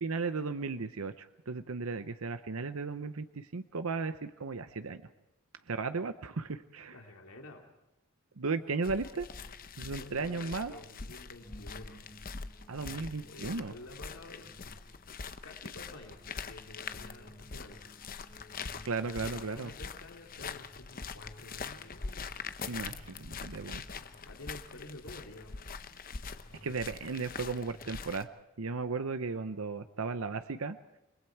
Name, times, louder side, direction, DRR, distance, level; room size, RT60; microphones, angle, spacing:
voice 1, 0.0-5.0 5.7-6.9 8.4-9.3 9.8-10.7 12.7-13.7 18.8-19.7 22.7-23.8 26.6-28.3 28.6-30.8, right 4 dB, 75° right, 10 dB, 0.8 m, -35 dB
voice 2, 6.9-7.7 9.8-12.1 13.1-14.7 15.4-17.8 19.0-22.3 22.6-25.6, left 2 dB, 75° left, 2 dB, 2.7 m, -51 dB
sound 1, 8.5-28.0, equal, 20° left, 4.6 m, -58 dB
sound 2, 8.8-28.2, left 5 dB, 40° left, 0.8 m, -44 dB
29.5 x 21.0 x 4.6 m, 0.97 s
head